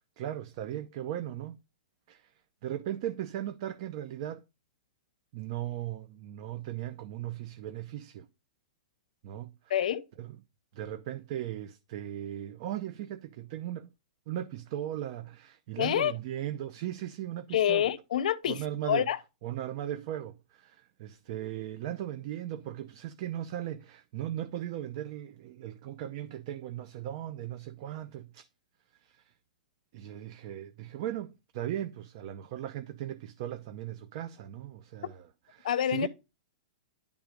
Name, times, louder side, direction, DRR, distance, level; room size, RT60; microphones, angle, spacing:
voice 1, 0.2-1.6 2.1-2.3 2.6-4.4 5.3-8.3 9.2-9.5 10.2-10.4 10.7-13.9 14.3-17.9 18.5-19.1 19.4-28.5 29.0-29.3 29.9-35.3 35.5-36.1, right 12 dB, 40° right, 0.5 m, -37 dB
voice 2, 9.7-10.0 15.8-16.1 17.5-18.6 18.9-19.2 35.6-36.1, left 10 dB, 70° left, 0.7 m, -27 dB
10.5 x 3.5 x 5.1 m
hypercardioid pair, 165°, 4 cm